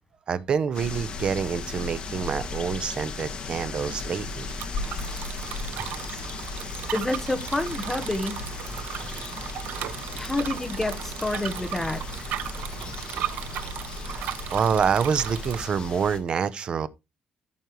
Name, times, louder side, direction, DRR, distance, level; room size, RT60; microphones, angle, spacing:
voice 1, 0.3-4.5 14.1-16.9, right 6 dB, 40° right, 0.8 m, -27 dB
sound 1, 0.7-16.2, left 3 dB, 35° left, 2.0 m, -36 dB
Bicycle, 3.9-15.6, right 11 dB, 85° right, 0.8 m, -36 dB
voice 2, 6.9-8.5 10.1-12.2, left 2 dB, 10° left, 1.2 m, -29 dB
14.0 x 5.4 x 3.1 m
cardioid pair, 175°, 3 cm